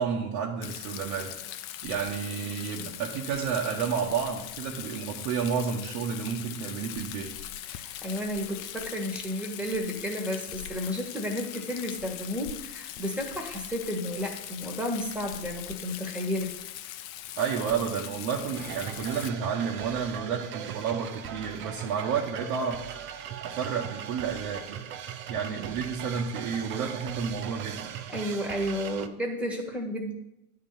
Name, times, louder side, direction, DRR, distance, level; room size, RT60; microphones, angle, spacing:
voice 1, 0.0-1.4 1.8-7.4 17.4-23.0 23.4-24.9 25.3-27.9, right 6 dB, 55° right, -2 dB, 1.4 m, -31 dB
Rain, 0.6-19.3, left 12 dB, 50° left, 0.7 m, -41 dB
voice 2, 7.7-16.5 28.1-30.1, equal, 5° right, 1 dB, 1.6 m, -32 dB
sound 1, 18.5-29.1, right 9 dB, 30° right, 0.5 m, -39 dB
10.5 x 3.8 x 7.3 m, 0.84 s
hypercardioid pair, 110°, 44 cm